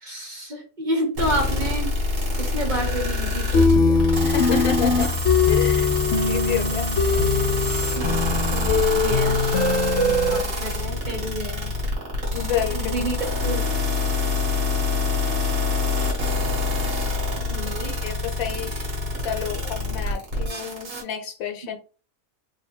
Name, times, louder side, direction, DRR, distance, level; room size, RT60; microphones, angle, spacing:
voice 1, 0.0-1.9 2.4-4.0 4.5-4.7 8.0-9.4 10.0-11.7 12.7-13.2 13.4-13.7 17.5-17.9, right 1 dB, 40° right, 0.9 m, -30 dB
sound 1, 1.2-21.0, left 2 dB, 85° right, 1.7 m, -26 dB
sound 2, 3.5-10.4, left 4 dB, 60° left, 0.8 m, -21 dB
voice 2, 4.2-5.1 5.5-5.9 6.3-6.9 12.3-13.1 17.8-18.9 19.2-21.8, left 9 dB, 90° left, 1.1 m, -29 dB
3.3 x 2.2 x 4.3 m
omnidirectional pair, 1.4 m